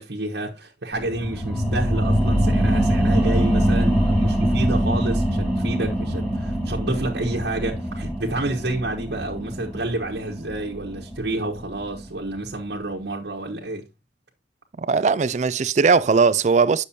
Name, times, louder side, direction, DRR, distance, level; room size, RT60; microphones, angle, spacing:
voice 1, 0.0-13.9, right 2 dB, 75° right, 1.2 m, -29 dB
sound 1, 0.9-12.1 12.5-12.6, equal, 5° left, 2.1 m, -23 dB
voice 2, 14.8-16.8, right 5 dB, 40° right, 0.4 m, -19 dB
8.4 x 6.5 x 2.8 m
head